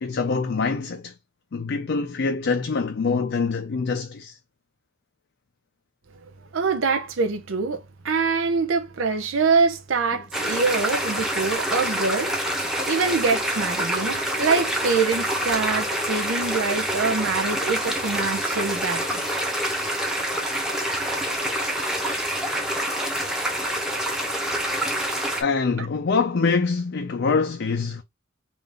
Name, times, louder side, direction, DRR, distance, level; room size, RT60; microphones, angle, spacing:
voice 1, 0.0-1.1 1.5-4.4 25.4-28.0, left 4 dB, 55° left, 0.5 m, -24 dB
voice 2, 6.5-12.3 12.9-19.2 25.8-25.9, right 4 dB, 65° right, 0.5 m, -24 dB
sound 1, 10.3-25.4, right 1 dB, 5° right, 0.8 m, -26 dB
3.7 x 2.5 x 3.3 m
head